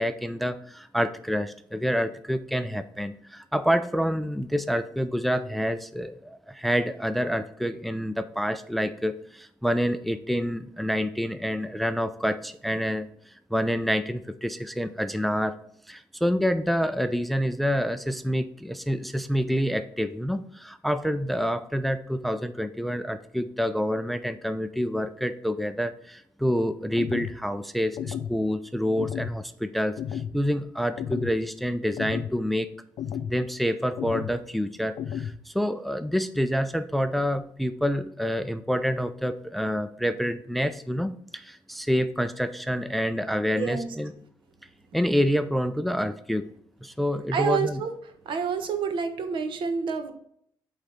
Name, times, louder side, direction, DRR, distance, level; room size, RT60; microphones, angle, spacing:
voice 1, 0.0-13.1 13.5-15.6 15.9-32.7 33.3-44.1 44.9-46.4 46.8-47.8, equal, ahead, 11 dB, 0.4 m, -27 dB
sound 1, 27.0-27.4 28.0-28.4 29.0-29.4 30.0-30.4 31.0-31.4 32.0-32.4 33.0-33.4 34.0-34.4 35.0-35.4, left 9 dB, 80° left, 0.5 m, -32 dB
voice 2, 43.5-43.9 47.3-50.1, right 6 dB, 75° right, 7 dB, 1.2 m, -28 dB
8.2 x 3.9 x 5.8 m, 0.66 s
cardioid pair, 115°, 8 cm